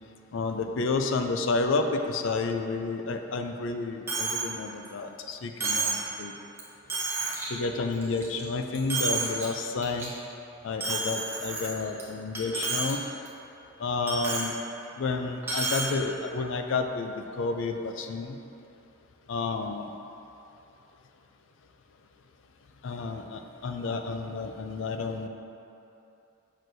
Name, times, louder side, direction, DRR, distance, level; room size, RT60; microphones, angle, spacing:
voice 1, 0.3-6.3 7.5-10.1 10.6-13.0 13.8-14.5 15.0-18.4 19.3-19.9 22.8-25.3, left 3 dB, 70° left, 5 dB, 0.4 m, -30 dB
Coin (dropping), 4.1-4.5 4.8-4.9 5.6-6.1 6.6-6.7 6.9-7.5 7.9-8.4 8.7-9.4 9.8-10.0 10.8-12.0 12.3-12.9 13.2-13.3 14.1-14.5 15.4-15.9, right 3 dB, 10° right, 0.8 m, -30 dB
6.2 x 6.1 x 2.6 m, 2.9 s
head